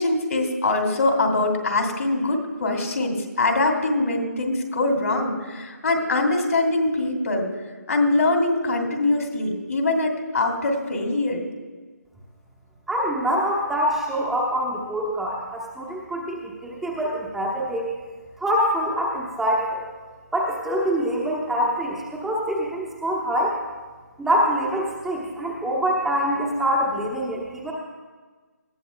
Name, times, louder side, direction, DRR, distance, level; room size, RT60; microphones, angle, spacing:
voice 1, 0.0-7.5 7.9-11.4, left 2 dB, 60° left, 3 dB, 2.4 m, -23 dB
voice 2, 12.9-17.9 18.4-19.8 20.3-23.5 24.2-27.7, equal, 5° right, -4 dB, 1.0 m, -25 dB
19.5 x 14.0 x 2.2 m, 1.4 s
figure-of-eight pair, 155°, 9 cm